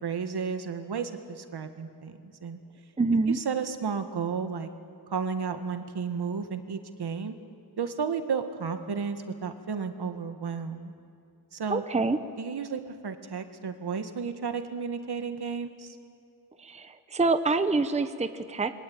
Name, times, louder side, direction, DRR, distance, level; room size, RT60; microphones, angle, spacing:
voice 1, 0.0-2.6 3.3-4.7 5.1-7.3 7.8-10.9 11.5-11.8 12.4-16.0, right 6 dB, 70° right, 8 dB, 1.8 m, -33 dB
voice 2, 3.0-3.4 11.7-12.2 16.6-18.7, right 3 dB, 15° right, 9 dB, 0.9 m, -26 dB
28.0 x 23.5 x 8.9 m, 2.4 s
wide cardioid pair, 145°, 41 cm